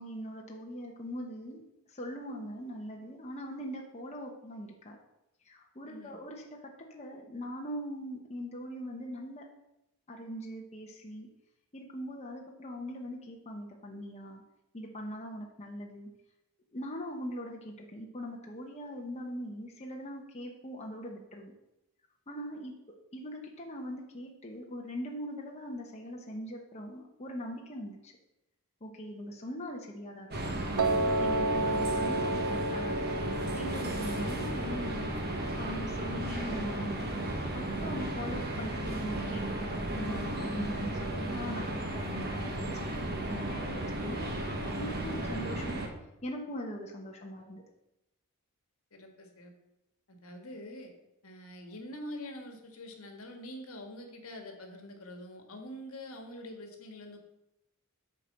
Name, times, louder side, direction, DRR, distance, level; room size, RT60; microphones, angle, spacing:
voice 1, 0.0-1.6 1.9-5.0 5.4-9.4 10.1-11.3 11.7-14.4 14.7-16.1 16.7-21.5 22.3-22.7 23.1-28.1 28.8-30.7 31.2-37.2 37.5-45.8 46.2-47.6, equal, 30° left, 0 dB, 1.0 m, -41 dB
voice 2, 5.9-6.2 48.9-49.5 50.1-50.9 51.2-57.2, left 1 dB, 75° left, 3 dB, 1.6 m, -45 dB
sound 1, 30.3-45.9, right 1 dB, 50° right, 1.4 m, -35 dB
Piano, 30.8-36.9, right 2 dB, 80° right, 0.6 m, -33 dB
8.6 x 4.5 x 6.5 m, 0.90 s
head